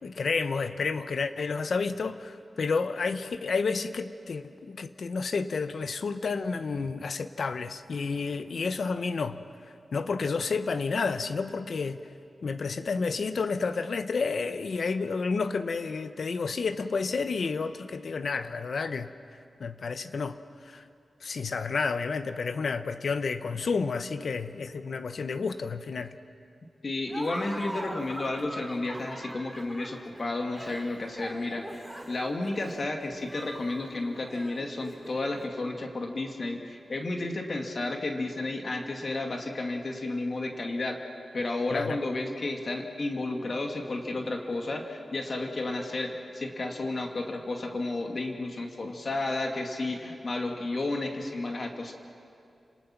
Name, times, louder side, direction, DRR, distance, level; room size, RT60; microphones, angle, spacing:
voice 1, 0.0-9.4 9.9-12.0 12.4-19.1 19.6-20.8 21.2-26.2 41.7-42.0, left 4 dB, 70° left, 11 dB, 0.9 m, -30 dB
voice 2, 26.8-41.0 41.3-51.9, left 2 dB, 55° left, 2 dB, 2.3 m, -32 dB
Laughter, 27.1-35.4, right 1 dB, ahead, 3.0 m, -42 dB
30.0 x 19.0 x 6.0 m, 2.5 s
cardioid pair, 70°, 0 cm